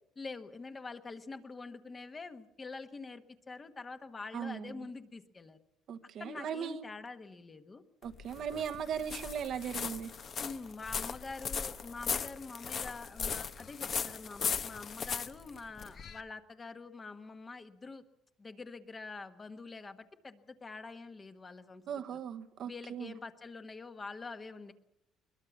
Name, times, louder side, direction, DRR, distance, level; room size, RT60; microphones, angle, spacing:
voice 1, 0.1-5.6 6.2-7.8 10.4-18.0 18.4-21.8 22.1-22.2 22.7-24.7, left 4 dB, 20° left, 8 dB, 1.3 m, -45 dB
voice 2, 4.3-4.7 5.9-6.9 8.0-10.1 21.9-23.1, right 8 dB, 50° right, 9 dB, 1.1 m, -38 dB
sound 1, 8.0-16.2, left 6 dB, 35° left, 1.0 m, -38 dB
22.0 x 21.0 x 7.1 m, 0.83 s
cardioid pair, 150°, 0 cm